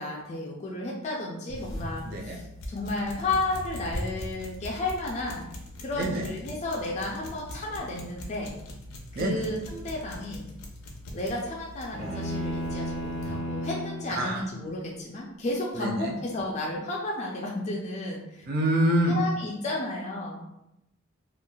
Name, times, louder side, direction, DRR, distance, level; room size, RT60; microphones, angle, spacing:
voice 1, 0.0-5.5 5.8-8.5 9.1-10.5 11.1-18.5 19.1-20.4, left 2 dB, 30° left, -3 dB, 0.3 m, -33 dB
sound 1, 1.5-13.4, left 1 dB, 80° left, 0.5 m, -41 dB
voice 2, 2.0-2.4 5.9-6.2 9.2-9.4 14.2-14.4 15.8-16.1 18.5-19.2, right 1 dB, 45° right, 1 dB, 0.4 m, -26 dB
sound 2, 11.9-14.2, equal, 75° right, 1.3 m, -33 dB
3.1 x 2.3 x 2.3 m, 0.86 s
head